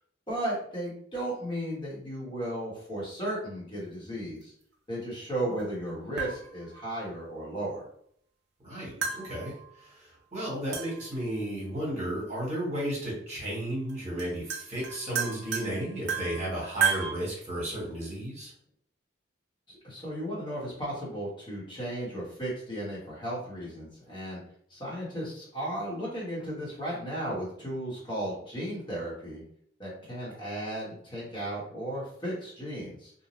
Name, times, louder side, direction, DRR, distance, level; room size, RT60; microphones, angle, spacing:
voice 1, 0.3-4.5 4.9-7.9 19.7-24.4 24.7-29.4 29.8-33.1, right 1 dB, 25° left, -6 dB, 1.0 m, -35 dB
sound 1, 5.6-5.7 6.2-6.9 9.0-9.9 10.7-11.3 12.7-12.8 13.9-14.0 14.2-17.1, right 7 dB, 55° right, 0.4 m, -33 dB
voice 2, 8.6-18.5, right 1 dB, 35° right, -5 dB, 1.1 m, -34 dB
2.6 x 2.0 x 3.0 m, 0.66 s
head